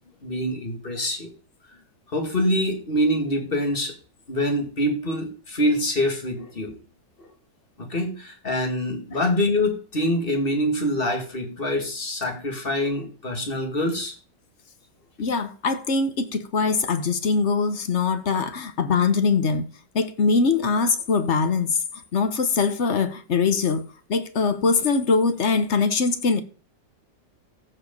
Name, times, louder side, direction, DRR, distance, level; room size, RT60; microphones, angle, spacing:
voice 1, 0.2-1.3 2.1-3.9 4.3-6.7 7.2-7.3 7.8-14.1, left 1 dB, 30° left, 2.3 m, -25 dB
voice 2, 15.2-19.6 19.9-21.8 22.1-23.8 24.1-26.4, left 4 dB, 45° left, 1.1 m, -22 dB
14.5 x 5.2 x 5.3 m
omnidirectional pair, 1.9 m